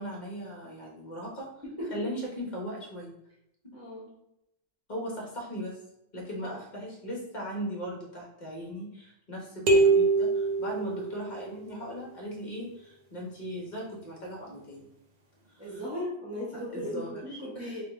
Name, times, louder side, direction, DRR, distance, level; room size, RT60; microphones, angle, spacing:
voice 1, 0.0-1.5 1.9-3.1 3.6-3.7 4.9-5.8 6.1-14.9 15.7-15.8 16.5-17.8, equal, 40° left, -2 dB, 1.2 m, -38 dB
voice 2, 3.7-4.1 6.4-6.5 15.6-17.8, left 1 dB, 10° right, -10 dB, 1.2 m, -37 dB
sound 1, 9.7-11.6, right 3 dB, 45° right, 0.6 m, -24 dB
3.7 x 2.6 x 3.4 m, 0.82 s
omnidirectional pair, 1.3 m